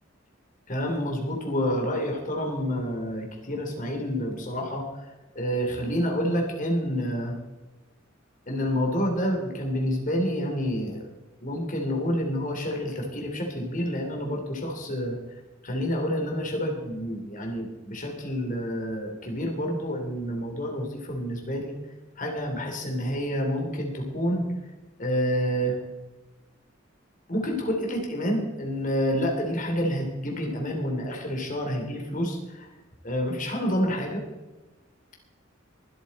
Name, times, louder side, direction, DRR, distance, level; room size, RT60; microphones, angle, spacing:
voice 1, 0.7-5.1 5.3-7.3 8.5-11.1 11.4-15.2 15.6-21.7 22.2-24.5 25.0-25.8 27.3-32.7 33.0-34.2, equal, 45° left, 1 dB, 3.0 m, -28 dB
24.0 x 8.3 x 4.2 m, 1.2 s
head